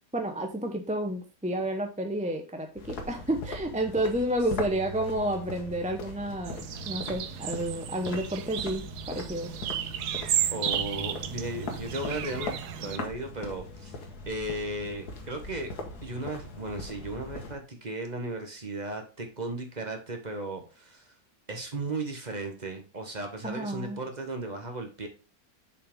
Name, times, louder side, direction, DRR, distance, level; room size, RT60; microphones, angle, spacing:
voice 1, 0.1-9.5 23.4-24.0, right 1 dB, 5° right, 4 dB, 0.6 m, -31 dB
sound 1, 2.8-17.5, left 2 dB, 85° left, 1.9 m, -40 dB
sound 2, 6.4-13.0, right 10 dB, 85° right, 1.2 m, -33 dB
voice 2, 10.5-14.0 14.3-15.7 16.0-21.1 21.5-25.1, right 2 dB, 30° right, 4 dB, 1.3 m, -36 dB
6.8 x 5.1 x 3.6 m, 0.32 s
omnidirectional pair, 1.6 m